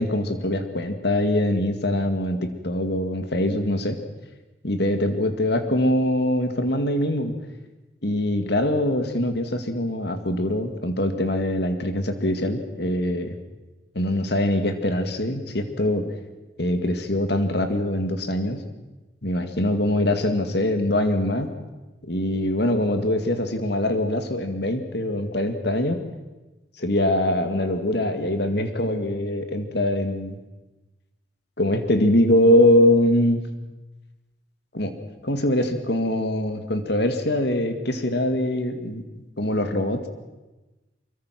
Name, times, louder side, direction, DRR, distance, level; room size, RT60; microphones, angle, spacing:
voice 1, 0.0-4.0 4.6-7.3 8.0-13.4 13.9-16.1 16.6-18.6 19.2-21.5 22.0-26.0 26.8-30.4 31.6-33.4 34.7-35.0 35.2-39.0 39.4-40.1, left 1 dB, 60° left, 7 dB, 2.3 m, -23 dB
24.5 x 23.0 x 6.2 m, 1.1 s
head